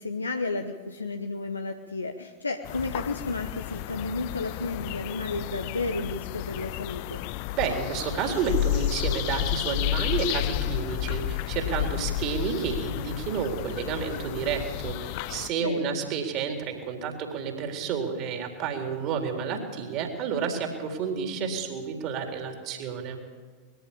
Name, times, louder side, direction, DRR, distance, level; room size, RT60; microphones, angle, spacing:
voice 1, 0.0-7.2 15.1-15.2 15.6-16.0 21.4-21.7, left 3 dB, 80° left, 6 dB, 1.0 m, -32 dB
sound 1, 2.6-15.5, left 15 dB, 45° left, 0.5 m, -31 dB
voice 2, 7.5-23.2, right 6 dB, 40° right, 4 dB, 3.8 m, -30 dB
21.5 x 14.5 x 8.9 m, 1.5 s
figure-of-eight pair, 90°, 0 cm